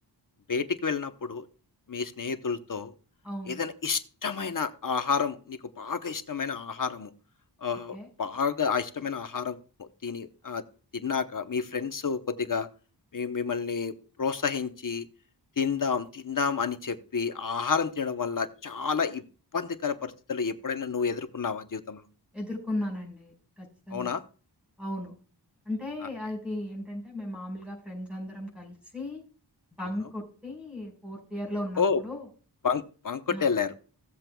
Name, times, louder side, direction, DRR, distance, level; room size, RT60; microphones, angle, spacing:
voice 1, 0.5-1.5 1.9-2.9 3.5-7.1 7.6-10.6 11.0-12.7 13.1-15.1 15.6-19.2 19.5-22.0 23.9-24.2 29.8-29.9 31.8-32.0 32.6-33.8, left 5 dB, 50° left, 9 dB, 0.9 m, -30 dB
voice 2, 3.2-3.6 7.9-8.1 22.3-24.1 24.8-25.1 25.6-29.2 29.8-32.3 33.3-33.5, left 1 dB, 5° right, -3 dB, 4.9 m, -36 dB
17.0 x 7.5 x 2.3 m, 0.38 s
wide cardioid pair, 70°, 42 cm